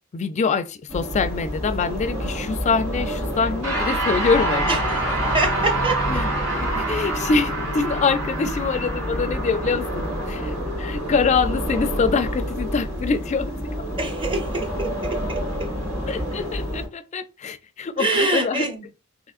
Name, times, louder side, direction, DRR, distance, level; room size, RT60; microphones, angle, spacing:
voice 1, 0.1-4.8 6.1-13.8 16.1-18.7, left 5 dB, 35° left, 0.3 m, -25 dB
sound 1, 0.9-16.9, equal, 65° right, 1.5 m, -29 dB
sound 2, 3.6-13.1, right 1 dB, 80° right, 2.0 m, -28 dB
voice 2, 5.1-6.0 14.0-15.7 18.0-18.8, right 2 dB, 25° right, 0.6 m, -25 dB
3.5 x 2.9 x 2.4 m
head